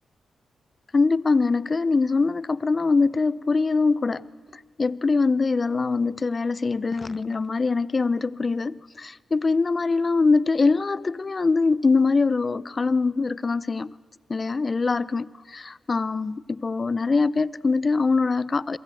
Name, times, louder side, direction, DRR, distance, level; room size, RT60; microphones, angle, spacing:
voice 1, 0.9-4.3 4.8-13.9 14.3-18.8, left 4 dB, 40° left, 0.7 m, -23 dB
29.0 x 23.0 x 7.8 m
cardioid pair, 65°, 0 cm